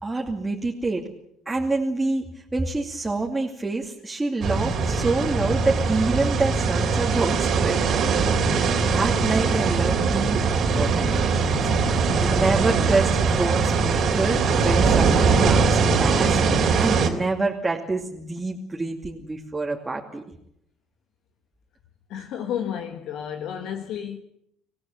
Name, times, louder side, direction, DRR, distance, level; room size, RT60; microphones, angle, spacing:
voice 1, 0.0-1.0 1.5-2.2 2.5-8.1 8.4-20.2, right 3 dB, 15° right, 2.6 m, -27 dB
sound 1, 4.4-17.1, right 4 dB, 50° right, 3.2 m, -21 dB
voice 2, 22.1-24.2, left 9 dB, 55° left, 1.6 m, -31 dB
26.0 x 17.0 x 7.5 m
figure-of-eight pair, 55°, 0 cm